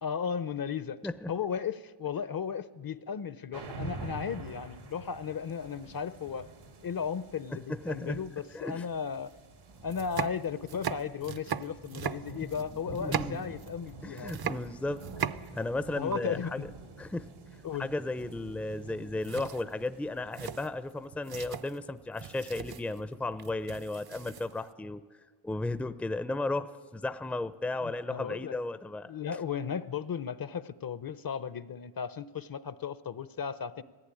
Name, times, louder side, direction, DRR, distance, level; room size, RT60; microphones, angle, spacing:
voice 1, 0.0-1.0 1.3-6.5 6.8-9.3 9.8-14.4 15.9-16.6 17.6-17.9 27.8-28.6 29.1-33.8, left 7 dB, 45° left, 15 dB, 0.7 m, -35 dB
sound 1, 3.5-21.3, right 3 dB, 90° right, 2.7 m, -47 dB
voice 2, 7.7-8.2 8.5-8.9 12.9-13.5 14.0-15.0 15.5-16.7 17.0-17.3 17.8-25.0 25.4-29.4, left 2 dB, 5° left, 12 dB, 0.5 m, -35 dB
sound 2, 9.2-9.3 9.8-13.9 14.2-15.8 16.1-16.2 18.7-19.0 19.2-24.7, right 8 dB, 50° right, 0.7 m, -38 dB
18.5 x 15.0 x 9.9 m, 1.5 s
wide cardioid pair, 100°, 48 cm